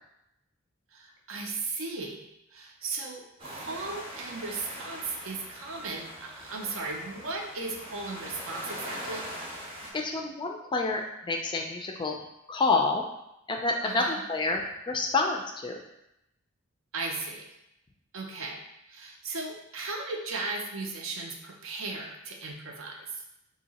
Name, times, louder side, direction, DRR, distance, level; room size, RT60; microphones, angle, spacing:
voice 1, 0.9-9.3 13.8-14.2 16.9-17.5 18.1-23.2, right 3 dB, 70° right, 2 dB, 0.6 m, -36 dB
sound 1, 3.4-9.9, equal, 25° right, 0.7 m, -42 dB
voice 2, 9.9-12.2 12.5-13.0 13.5-15.8, left 3 dB, 20° left, 2 dB, 0.3 m, -28 dB
2.8 x 2.8 x 4.0 m, 0.83 s
head